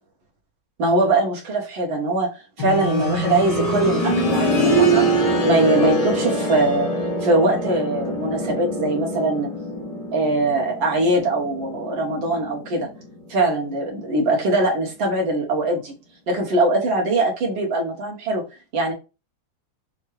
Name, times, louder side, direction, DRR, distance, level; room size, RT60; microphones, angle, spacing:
voice 1, 0.8-6.9 7.2-9.5 10.1-12.9 13.3-15.9 16.3-18.4 18.7-18.9, right 2 dB, 75° right, 2.1 m, -22 dB
sound 1, 2.6-13.3 13.7-13.8 14.7-14.8, right 1 dB, 65° left, 2.6 m, -24 dB
6.2 x 2.2 x 3.1 m
omnidirectional pair, 2.1 m